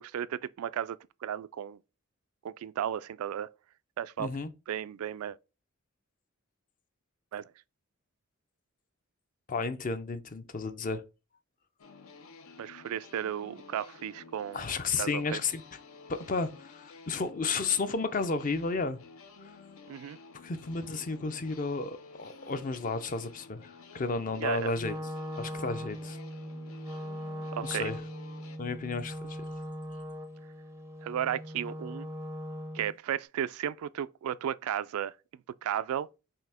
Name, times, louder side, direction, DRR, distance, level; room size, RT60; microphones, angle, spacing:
voice 1, 0.0-1.8 2.4-3.5 4.0-4.3 4.7-5.4 7.3-7.4 12.6-14.7 15.0-15.4 19.9-20.2 24.4-24.7 27.5-27.9 31.0-32.1 32.7-35.1 35.6-36.1, right 9 dB, 90° right, 0.3 m, -34 dB
voice 2, 4.2-4.5 9.5-11.0 14.5-15.6 16.1-19.0 20.3-24.9 25.4-26.2 27.6-28.0 28.6-29.5, left 4 dB, 40° left, 0.5 m, -32 dB
sound 1, 11.8-28.6, left 4 dB, 75° left, 0.7 m, -52 dB
Wind instrument woodwind instrument, 24.8-33.0, equal, 15° right, 0.4 m, -40 dB
5.7 x 2.7 x 3.5 m
head